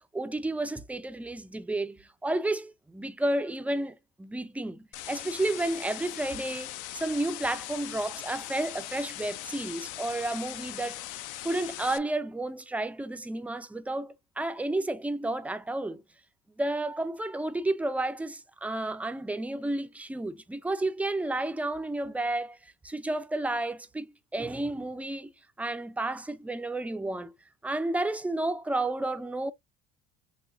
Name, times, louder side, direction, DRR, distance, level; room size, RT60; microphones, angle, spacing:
voice 1, 0.0-11.0 11.4-16.0 16.6-22.6 22.8-24.1 24.3-25.3 25.6-27.3 27.6-29.5, right 2 dB, 5° right, 0.4 m, -31 dB
sound 1, 4.9-12.0, left 14 dB, 65° left, 0.5 m, -40 dB
5.9 x 2.2 x 2.5 m
cardioid pair, 120°, 34 cm